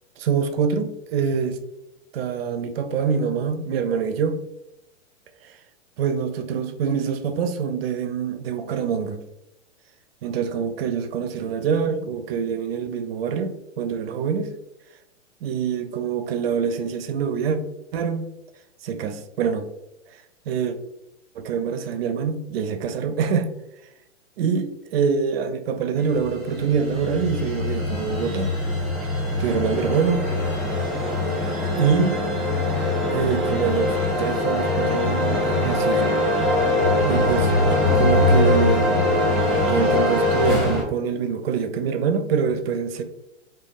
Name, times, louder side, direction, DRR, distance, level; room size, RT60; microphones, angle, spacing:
voice 1, 0.2-1.6 2.1-4.4 5.4-5.6 6.0-9.2 10.2-14.5 15.4-17.6 17.9-18.3 18.8-19.7 20.1-20.8 21.4-23.5 24.4-28.5 29.0-30.2 31.8-32.1 33.1-36.2 37.0-37.5 37.9-39.3 39.7-43.0, right 6 dB, 55° right, 8 dB, 0.4 m, -25 dB
sound 1, 26.1-40.8, left 2 dB, ahead, 1.1 m, -22 dB
3.3 x 2.3 x 2.4 m, 0.86 s
hypercardioid pair, 110°, 36 cm